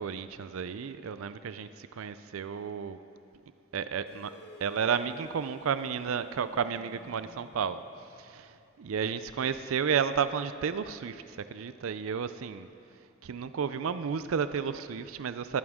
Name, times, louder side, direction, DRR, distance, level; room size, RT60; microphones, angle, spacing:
voice 1, 0.0-3.0 3.7-4.3 4.6-7.8 8.2-12.7 13.2-15.6, right 7 dB, 85° right, 12 dB, 0.4 m, -32 dB
sound 1, 4.1-8.9, left 1 dB, 50° left, 0.8 m, -53 dB
20.0 x 11.0 x 3.6 m, 2.5 s
head